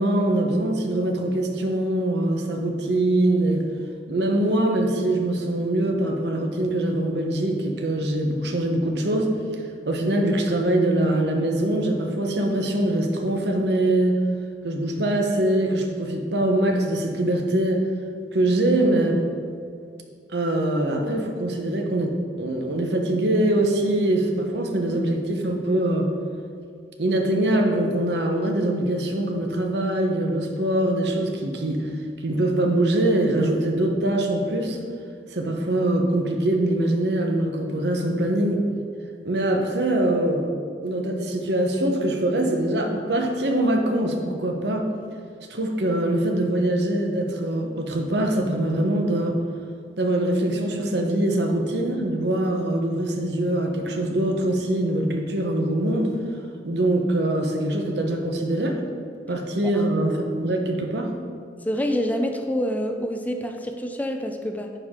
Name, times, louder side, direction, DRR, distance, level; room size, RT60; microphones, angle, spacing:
voice 1, 0.0-3.6 4.1-9.3 9.9-14.2 14.6-17.8 18.3-19.2 20.3-26.1 27.0-31.9 32.2-34.8 35.3-38.6 39.2-40.4 40.8-44.9 45.5-49.3 50.0-56.1 56.6-58.8 59.3-61.1, right 1 dB, 70° right, 2 dB, 0.9 m, -23 dB
voice 2, 61.6-64.7, equal, 10° left, 4 dB, 0.4 m, -26 dB
9.9 x 4.6 x 3.7 m, 2.2 s
head